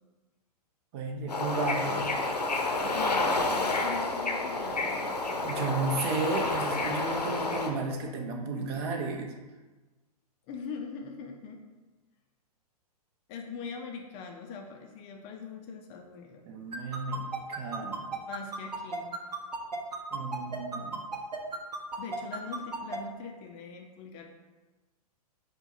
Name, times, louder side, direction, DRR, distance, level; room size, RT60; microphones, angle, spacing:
voice 1, 0.9-2.1 5.4-9.4 16.4-18.1 20.1-21.1, right 3 dB, 40° right, 2 dB, 0.6 m, -33 dB
Bird / Ocean, 1.3-7.7, left 2 dB, 90° left, 0.6 m, -29 dB
voice 2, 2.8-5.8 10.5-11.6 13.3-16.4 18.2-19.1 22.0-24.3, left 5 dB, 30° left, 3 dB, 0.4 m, -42 dB
sound 1, 16.7-23.0, right 4 dB, 85° right, 0.6 m, -34 dB
4.4 x 2.2 x 4.2 m, 1.2 s
figure-of-eight pair, 110°, 20 cm